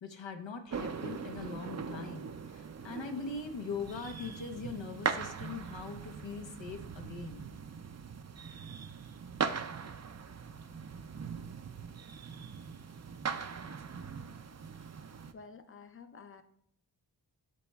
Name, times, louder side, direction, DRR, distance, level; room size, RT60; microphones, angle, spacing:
voice 1, 0.0-7.5, left 4 dB, 80° left, 4 dB, 1.0 m, -41 dB
sound 1, 0.7-15.3, right 6 dB, 40° right, 0.5 m, -40 dB
voice 2, 15.3-16.4, left 5 dB, 30° left, 8 dB, 0.6 m, -51 dB
13.0 x 4.3 x 2.3 m, 0.73 s
wide cardioid pair, 65°, 44 cm